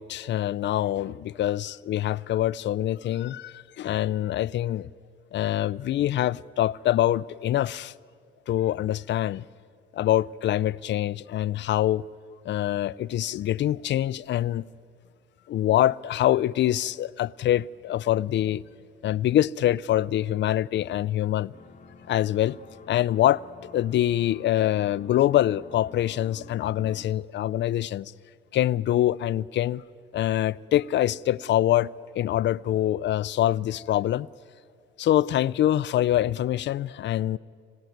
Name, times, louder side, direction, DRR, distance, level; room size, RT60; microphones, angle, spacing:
voice 1, 0.0-4.9 5.3-7.9 8.5-9.4 9.9-12.0 12.5-14.7 15.5-18.6 19.0-21.5 22.1-22.6 22.9-23.4 23.7-28.1 28.5-29.8 30.1-34.3 35.0-37.4, left 13 dB, 65° left, 0.5 m, -25 dB
sound 1, 21.5-27.1, left 4 dB, 40° left, 1.2 m, -49 dB
26.0 x 17.0 x 9.4 m
cardioid pair, 90°, 20 cm